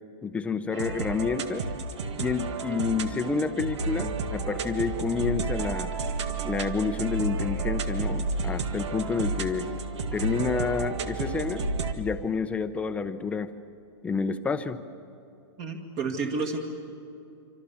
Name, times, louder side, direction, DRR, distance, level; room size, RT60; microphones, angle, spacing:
voice 1, 0.2-1.7 2.2-5.9 6.4-9.7 10.1-11.7 12.0-13.5 14.0-14.8, left 5 dB, 10° left, 9 dB, 0.8 m, -29 dB
sound 1, 0.7-11.9, right 3 dB, 80° right, 2.0 m, -31 dB
voice 2, 15.6-16.6, right 4 dB, 40° right, 2 dB, 2.1 m, -30 dB
26.5 x 25.5 x 7.2 m, 2.6 s
hypercardioid pair, 150°, 15 cm